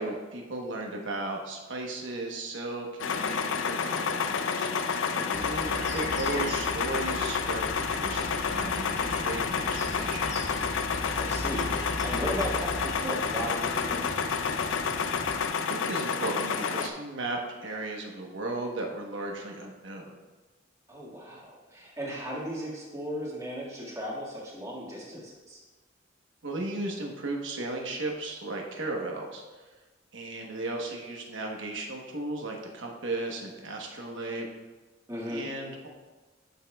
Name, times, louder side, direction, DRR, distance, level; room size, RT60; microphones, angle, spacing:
voice 1, 0.0-4.7 5.4-10.2 15.6-20.1 26.4-29.4 30.1-34.5 35.3-35.9, right 2 dB, 75° right, 1 dB, 1.1 m, -35 dB
sound 1, 3.0-16.9, left 6 dB, 80° left, 0.5 m, -29 dB
voice 2, 5.1-5.6 11.1-14.2 20.9-25.6 35.1-35.5, equal, 15° right, -5 dB, 1.8 m, -36 dB
sound 2, 5.3-12.9, left 1 dB, 40° left, 1.4 m, -39 dB
sound 3, 7.9-15.5, equal, ahead, 0.5 m, -43 dB
11.5 x 5.6 x 2.3 m, 1.2 s
head